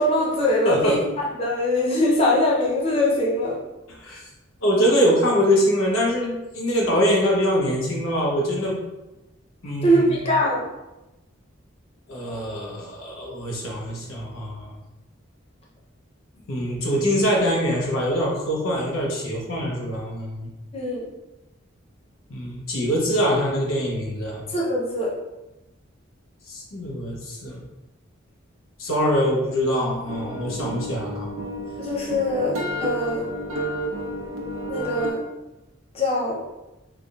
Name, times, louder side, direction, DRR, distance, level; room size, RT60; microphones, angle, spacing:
voice 1, 0.0-3.6 9.8-10.7 20.7-21.0 24.5-25.1 31.8-33.3 34.7-35.2 35.9-36.4, left 1 dB, 30° left, -4 dB, 0.5 m, -22 dB
voice 2, 0.6-1.0 4.0-4.3 4.6-8.8 9.6-10.2 12.1-14.7 16.5-20.5 22.3-24.4 26.5-27.6 28.8-31.3, equal, 85° left, -3 dB, 1.0 m, -23 dB
sound 1, 30.1-35.1, right 1 dB, 90° right, 0.7 m, -30 dB
3.8 x 3.5 x 2.3 m, 0.99 s
head